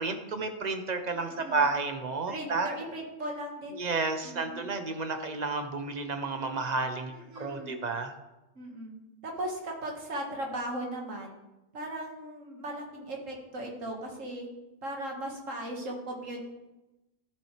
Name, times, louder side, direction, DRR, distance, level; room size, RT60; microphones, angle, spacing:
voice 1, 0.0-2.7 3.7-8.1, right 3 dB, 40° right, 7 dB, 0.9 m, -31 dB
voice 2, 1.1-1.6 2.3-3.8 4.2-4.6 7.1-7.8 8.6-8.9 9.2-11.3 11.7-14.5 14.8-16.4, right 1 dB, 85° right, 0 dB, 2.1 m, -38 dB
13.0 x 7.4 x 3.3 m, 1.0 s
omnidirectional pair, 1.3 m